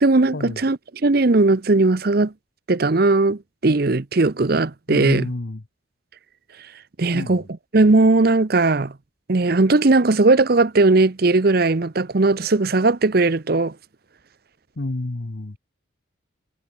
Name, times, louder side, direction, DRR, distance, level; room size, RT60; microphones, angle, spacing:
voice 1, 0.0-2.3 2.7-5.3 7.0-7.4 7.7-8.9 9.3-13.7, right 3 dB, 50° right, 0.7 m, -18 dB
voice 2, 4.9-5.6 7.1-7.4 14.8-15.6, left 2 dB, 55° left, 0.9 m, -29 dB
head